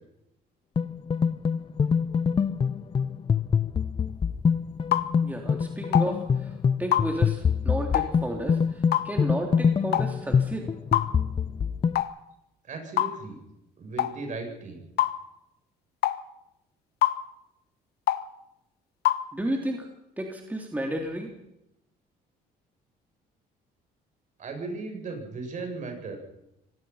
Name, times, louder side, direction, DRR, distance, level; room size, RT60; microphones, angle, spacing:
sound 1, 0.8-12.0, left 6 dB, 30° left, 0.7 m, -25 dB
sound 2, 4.9-5.1 5.9-6.1 6.9-7.1 7.9-8.1 8.9-9.1 9.9-10.1 10.9-11.1 12.0-12.1 13.0-13.2 14.0-14.1 15.0-15.2 16.0-16.2 17.0-17.2 18.1-18.3 19.1-19.2, left 13 dB, 70° left, 1.4 m, -24 dB
voice 1, 5.2-10.7 19.3-19.9 20.2-21.3, right 1 dB, 10° right, 2 dB, 3.4 m, -32 dB
voice 2, 12.7-13.4 13.8-14.8 24.4-26.2, right 3 dB, 45° right, 4 dB, 7.9 m, -36 dB
25.0 x 18.5 x 5.8 m, 0.85 s
cardioid pair, 110°, 17 cm